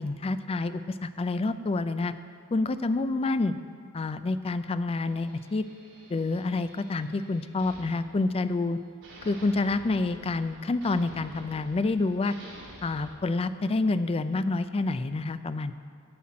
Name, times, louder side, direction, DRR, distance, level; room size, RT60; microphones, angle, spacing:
voice 1, 0.0-2.1 2.5-3.5 3.9-5.6 6.1-8.8 9.3-12.3 12.8-15.7, left 3 dB, 25° left, 12 dB, 0.3 m, -28 dB
sound 1, 5.1-8.7 9.0-13.1, right 1 dB, 55° right, 3.2 m, -50 dB
9.8 x 5.9 x 8.5 m, 2.2 s
head